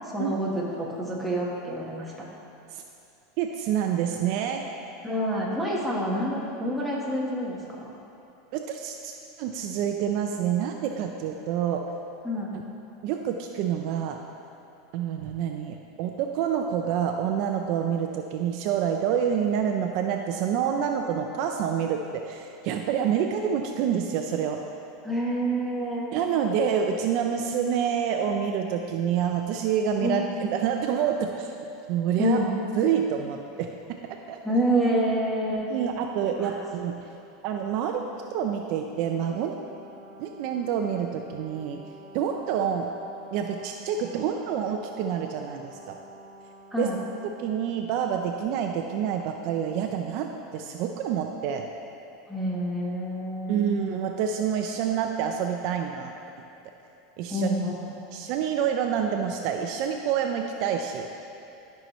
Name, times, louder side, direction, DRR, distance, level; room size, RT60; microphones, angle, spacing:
voice 1, 0.1-2.3 5.0-7.9 12.2-12.5 25.0-26.1 30.0-30.2 32.2-32.5 34.4-35.7 36.4-36.6 46.7-47.0 52.3-53.7 57.3-57.8, equal, ahead, -5 dB, 1.4 m, -27 dB
voice 2, 3.4-4.6 8.5-11.8 13.0-14.2 14.9-24.6 26.1-31.5 31.9-32.4 32.7-34.4 35.7-37.0 37.4-38.0 38.3-39.5 40.2-41.8 42.1-42.9 43.3-46.0 46.8-46.9 47.4-50.3 50.5-51.7 53.5-56.1 57.2-57.5 58.1-61.1, right 8 dB, 55° right, 4 dB, 0.5 m, -27 dB
Brass instrument, 39.3-48.0, right 2 dB, 25° right, 0.9 m, -49 dB
12.5 x 5.6 x 3.1 m, 2.8 s
supercardioid pair, 130°, 0 cm